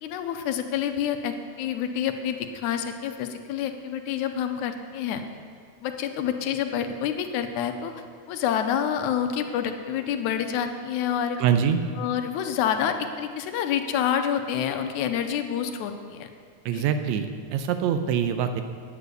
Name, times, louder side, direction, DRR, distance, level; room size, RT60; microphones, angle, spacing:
voice 1, 0.0-5.2 5.8-11.4 12.0-16.3 16.7-16.9, left 9 dB, 85° left, 7 dB, 2.1 m, -28 dB
voice 2, 11.4-11.8 16.7-18.6, right 8 dB, 80° right, 8 dB, 1.9 m, -24 dB
9.7 x 8.4 x 6.7 m, 2.2 s
omnidirectional pair, 3.4 m